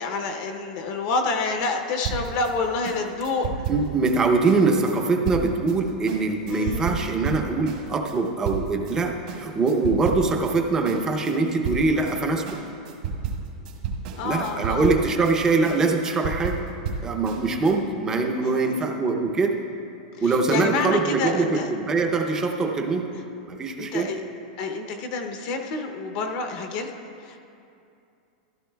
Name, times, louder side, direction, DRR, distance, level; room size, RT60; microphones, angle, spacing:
voice 1, 0.0-3.5 6.5-7.0 14.2-14.9 18.4-19.0 20.2-21.7 23.8-24.2 24.6-26.9 27.2-27.4, left 3 dB, 35° left, 4 dB, 0.6 m, -28 dB
sound 1, 2.0-9.0 9.3-10.6 10.8-17.8, right 5 dB, 55° right, 1.6 m, -32 dB
voice 2, 3.7-12.6 14.2-16.6 17.0-19.6 20.2-23.1 23.5-24.1, right 3 dB, 15° right, 4 dB, 0.6 m, -23 dB
15.0 x 12.5 x 2.2 m, 2.6 s
supercardioid pair, 170°, 5 cm